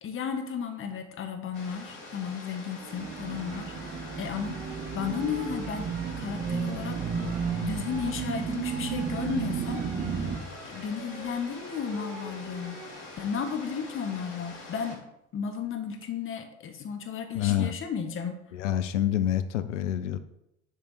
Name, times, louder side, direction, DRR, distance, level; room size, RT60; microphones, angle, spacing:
voice 1, 0.0-4.6 4.9-5.9 6.2-9.8 10.6-12.8 13.2-15.0 15.3-18.3, left 7 dB, 35° left, 6 dB, 1.2 m, -34 dB
sound 1, 1.5-15.0, left 3 dB, 55° left, 2.6 m, -45 dB
sound 2, 2.8-14.0 15.6-16.1, right 6 dB, 70° right, 1.0 m, -47 dB
sound 3, 3.0-10.4, right 6 dB, 30° right, 0.9 m, -33 dB
voice 2, 17.3-17.7 18.5-20.2, left 11 dB, 75° left, 12 dB, 0.6 m, -27 dB
10.0 x 3.4 x 4.2 m, 0.83 s
figure-of-eight pair, 70°, 36 cm